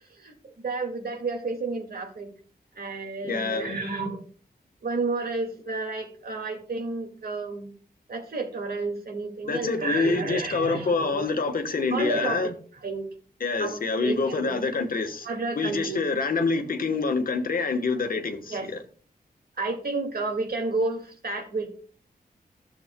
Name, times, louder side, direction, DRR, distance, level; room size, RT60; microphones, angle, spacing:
voice 1, 0.6-2.3 2.8-4.2 4.8-7.7 8.1-11.2 11.9-12.4 12.8-13.1 13.6-14.6 15.3-16.1 18.5-18.7 19.6-21.7, right 3 dB, 70° right, 2.0 m, -31 dB
voice 2, 3.2-3.8 9.4-12.5 13.4-18.8, left 4 dB, 60° left, 1.1 m, -26 dB
14.0 x 7.2 x 2.2 m
wide cardioid pair, 125°, 16 cm